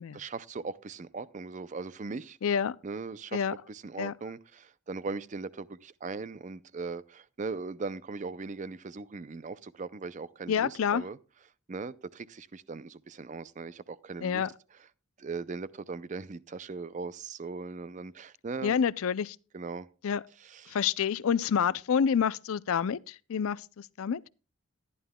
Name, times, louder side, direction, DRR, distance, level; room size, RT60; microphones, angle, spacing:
voice 1, 0.1-2.4 2.8-3.4 3.7-11.2 11.7-14.4 15.2-18.8 19.5-19.9 20.4-20.8, right 4 dB, 35° right, 0.4 m, -39 dB
voice 2, 2.4-2.8 3.3-3.5 4.0-4.1 10.5-11.0 14.2-14.5 18.6-19.4 20.0-20.2 20.7-24.2, left 7 dB, 70° left, 0.4 m, -28 dB
14.5 x 11.0 x 2.2 m
head